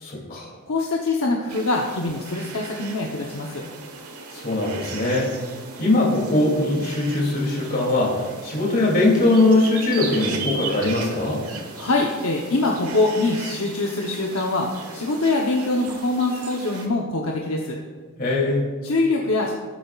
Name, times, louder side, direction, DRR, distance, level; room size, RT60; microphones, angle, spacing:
voice 1, 0.0-0.5 4.3-5.3 5.8-11.4 18.2-18.7, left 2 dB, 45° left, -2 dB, 2.7 m, -21 dB
voice 2, 0.7-3.6 11.7-17.8 18.8-19.5, left 2 dB, 65° left, -1 dB, 0.9 m, -24 dB
sound 1, 1.5-16.9, right 4 dB, 90° right, 1.3 m, -37 dB
18.5 x 8.4 x 2.4 m, 1.5 s
head